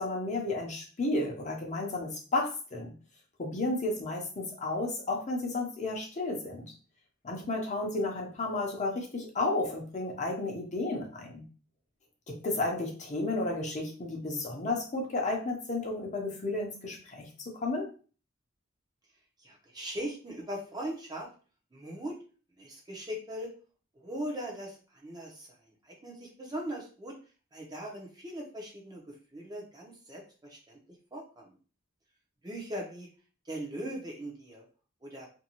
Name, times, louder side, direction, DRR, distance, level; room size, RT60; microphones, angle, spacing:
voice 1, 0.0-2.9 3.4-6.7 7.2-11.4 12.3-17.9, left 2 dB, 35° left, 0 dB, 0.7 m, -32 dB
voice 2, 19.4-21.3 21.7-22.2 22.6-23.5 23.9-27.1 27.5-30.8 31.1-31.5 32.4-33.1 33.5-34.6 35.0-35.3, right 1 dB, 20° right, -1 dB, 0.6 m, -40 dB
2.6 x 2.2 x 2.9 m, 0.38 s
head